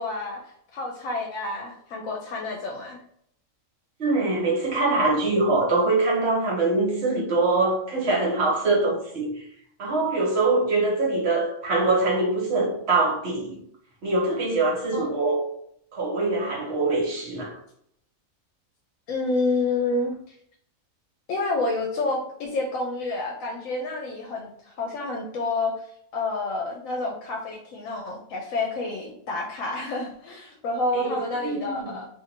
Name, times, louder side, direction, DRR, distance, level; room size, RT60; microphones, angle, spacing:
voice 1, 0.0-3.0 14.9-15.1 19.1-20.3 21.3-25.9 26.1-32.1, left 3 dB, 75° left, 1.0 m, -29 dB
voice 2, 4.0-9.4 9.8-13.6 14.0-15.4 15.9-17.6 30.9-31.9, right 2 dB, 55° right, 1.1 m, -23 dB
2.6 x 2.6 x 4.2 m
omnidirectional pair, 1.4 m